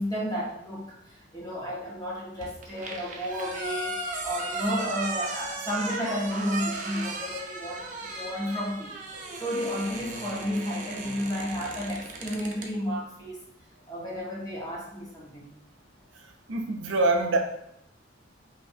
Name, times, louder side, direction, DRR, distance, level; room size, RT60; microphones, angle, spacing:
voice 1, 0.0-9.0 9.4-13.4 13.9-15.5, equal, 20° left, -5 dB, 1.2 m, -32 dB
sound 1, 2.4-12.7, right 2 dB, 40° right, 0.6 m, -36 dB
voice 2, 16.5-17.4, right 2 dB, 90° right, 3 dB, 0.7 m, -24 dB
5.3 x 2.6 x 2.7 m, 0.77 s
head